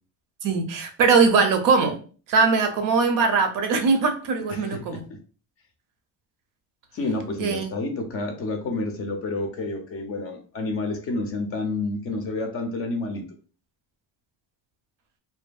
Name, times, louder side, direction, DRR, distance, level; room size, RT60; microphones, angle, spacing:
voice 1, 0.4-2.0 2.3-5.0 7.4-7.7, right 4 dB, 60° right, 6 dB, 0.6 m, -21 dB
voice 2, 4.5-4.8 6.9-13.2, left 2 dB, 40° left, 4 dB, 0.4 m, -29 dB
2.6 x 2.5 x 2.2 m, 0.39 s
cardioid pair, 170°, 36 cm